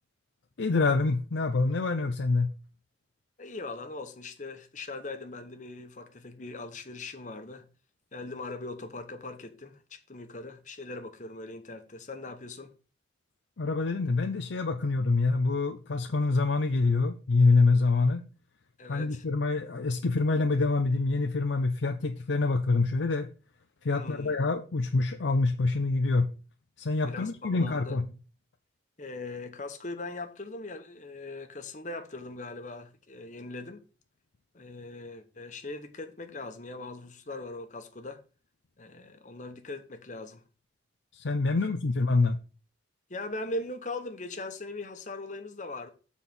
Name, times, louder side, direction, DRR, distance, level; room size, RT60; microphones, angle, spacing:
voice 1, 0.6-2.5 13.6-18.2 18.9-23.3 23.8-26.3 26.8-28.0 41.1-42.4, left 3 dB, 75° left, 0.6 m, -26 dB
voice 2, 3.4-7.7 8.1-12.7 18.8-19.2 24.0-24.4 27.0-28.0 29.0-33.8 34.5-38.2 38.8-40.4 41.5-41.7 43.1-45.9, left 2 dB, 40° left, 1.0 m, -40 dB
7.3 x 4.2 x 5.9 m
head